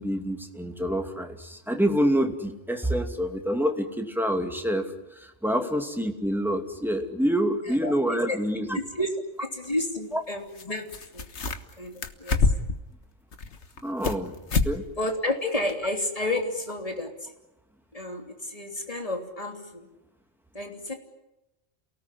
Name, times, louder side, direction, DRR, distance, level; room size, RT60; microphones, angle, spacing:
voice 1, 0.0-8.8 10.1-10.2 13.8-14.4 14.6-14.8, equal, ahead, 4 dB, 2.5 m, -27 dB
sound 1, 8.9-9.0 10.6-10.7 10.9-11.7 12.0-12.8 13.3-14.2 14.5-14.8 15.1-15.2 15.7-15.8, left 4 dB, 80° left, 1.7 m, -26 dB
voice 2, 9.4-11.3 11.8-12.4 15.0-17.3 17.9-19.9 20.5-20.9, left 1 dB, 30° left, 3 dB, 3.2 m, -31 dB
28.5 x 18.5 x 9.9 m, 0.96 s
omnidirectional pair, 1.2 m